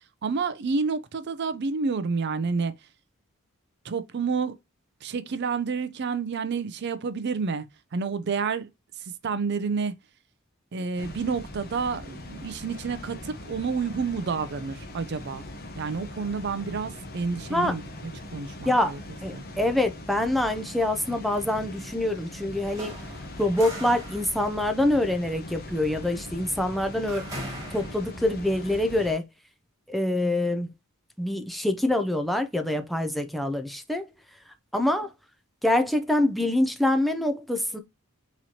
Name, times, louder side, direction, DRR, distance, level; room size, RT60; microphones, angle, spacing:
voice 1, 0.2-2.7 3.8-4.5 5.0-7.7 7.9-8.7 9.2-9.9 10.7-15.4 15.8-17.9 18.3-19.0 19.3-19.5, right 5 dB, 50° right, 0.5 m, -29 dB
Water, 11.0-29.1, left 1 dB, 45° left, 0.8 m, -41 dB
voice 2, 19.2-22.9 23.4-27.2 27.7-29.2 29.9-30.7 31.2-34.0 34.7-35.1 35.6-37.8, left 1 dB, ahead, 0.5 m, -25 dB
sound 1, 22.5-28.4, right 1 dB, 15° right, 1.7 m, -42 dB
4.0 x 3.1 x 2.8 m
head